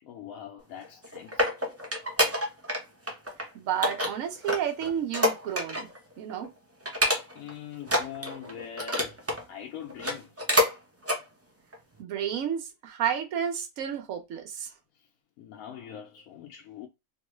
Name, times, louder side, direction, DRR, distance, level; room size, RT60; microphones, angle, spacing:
voice 1, 0.0-1.5 7.3-10.3 15.4-16.9, left 9 dB, 85° left, 1.1 m, -43 dB
sound 1, 0.8-2.8 3.1-3.4 3.8-6.0 6.3-6.5 6.9-7.5 7.8-9.4 9.9-10.7 11.0-11.2 11.7-11.8, left 1 dB, 20° right, 0.4 m, -27 dB
voice 2, 3.5-5.9 6.2-6.5 12.0-14.7, right 9 dB, 75° right, 1.1 m, -31 dB
3.0 x 2.3 x 3.0 m
omnidirectional pair, 1.4 m